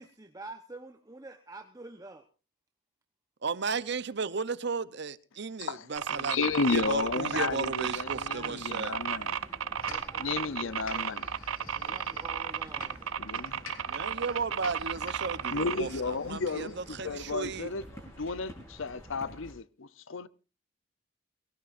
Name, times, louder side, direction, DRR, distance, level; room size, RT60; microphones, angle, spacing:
voice 1, 0.0-2.2 9.8-11.2 11.8-13.1, right 2 dB, 15° right, 1.0 m, -47 dB
voice 2, 3.4-6.4 6.7-9.0 13.9-17.7, right 4 dB, 55° right, 0.8 m, -34 dB
voice 3, 5.6-9.4 10.2-11.3 13.2-13.6 15.5-17.8 18.2-20.3, left 4 dB, 75° left, 0.7 m, -33 dB
sound 1, 6.0-19.5, equal, 15° left, 5.1 m, -49 dB
sound 2, 6.0-15.8, right 8 dB, 90° right, 0.7 m, -33 dB
sound 3, 9.8-16.9, left 4 dB, 90° left, 3.4 m, -50 dB
22.5 x 17.0 x 2.6 m
head